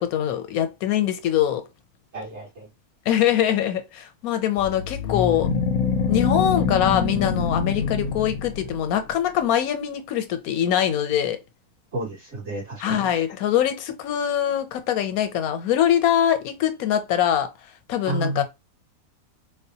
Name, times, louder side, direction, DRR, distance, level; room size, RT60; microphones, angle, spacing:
voice 1, 0.0-1.6 3.1-5.5 6.1-11.4 12.8-17.5 17.9-18.4, left 10 dB, 85° left, 1.1 m, -23 dB
voice 2, 2.1-2.7 11.9-13.1 18.0-18.4, right 2 dB, 50° right, 2.3 m, -31 dB
sound 1, 4.6-9.0, left 5 dB, 65° left, 0.8 m, -25 dB
4.0 x 2.2 x 2.7 m
omnidirectional pair, 1.5 m